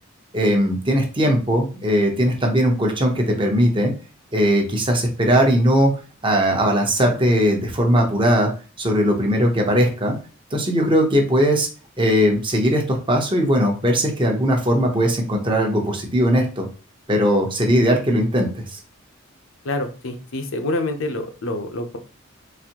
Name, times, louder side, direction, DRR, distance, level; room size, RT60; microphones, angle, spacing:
voice 1, 0.3-3.9 4.3-5.9 6.2-8.5 8.8-10.1 10.5-11.7 12.0-16.7 17.1-18.8, equal, 25° right, 2 dB, 0.8 m, -19 dB
voice 2, 19.6-22.0, left 2 dB, 75° left, 6 dB, 0.7 m, -27 dB
4.1 x 2.6 x 2.9 m, 0.35 s
head